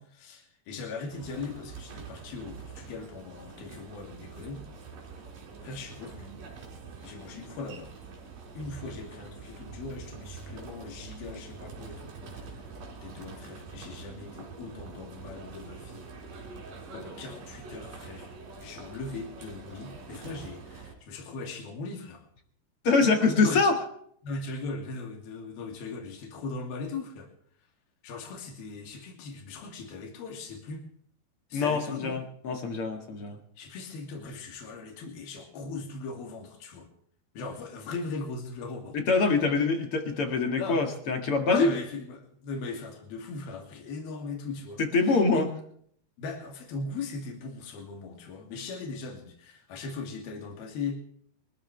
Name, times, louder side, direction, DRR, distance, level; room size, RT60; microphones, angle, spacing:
voice 1, 0.0-4.6 5.6-6.4 7.0-7.9 8.6-12.6 13.0-16.0 16.9-18.3 18.6-22.3 23.4-23.6 24.2-27.3 28.0-30.8 31.5-32.2 33.6-36.9 37.3-39.0 39.4-39.5 40.6-40.9 41.5-45.4 46.2-51.0, left 4 dB, 70° left, 2 dB, 4.4 m, -39 dB
sound 1, 1.1-20.9, right 4 dB, 60° right, 4.6 m, -45 dB
voice 2, 22.8-23.7 31.5-33.4 38.9-41.7 44.8-45.5, left 3 dB, 45° left, 4 dB, 2.2 m, -25 dB
23.5 x 14.0 x 3.3 m, 0.63 s
omnidirectional pair, 4.5 m